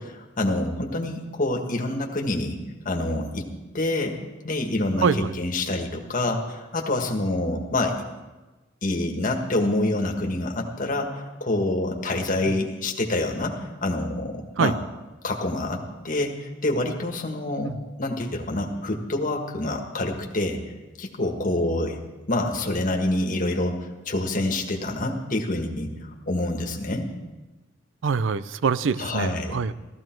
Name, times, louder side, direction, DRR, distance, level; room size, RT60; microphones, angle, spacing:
voice 1, 0.0-2.6 2.8-3.4 3.7-4.2 4.4-8.0 8.8-13.5 13.8-14.8 15.2-17.7 18.0-20.6 21.0-22.0 22.3-25.9 26.3-27.1 29.0-29.5, left 2 dB, 45° left, 2 dB, 1.6 m, -26 dB
voice 2, 28.0-29.7, right 5 dB, 70° right, 15 dB, 0.5 m, -24 dB
15.5 x 13.5 x 4.6 m, 1.2 s
head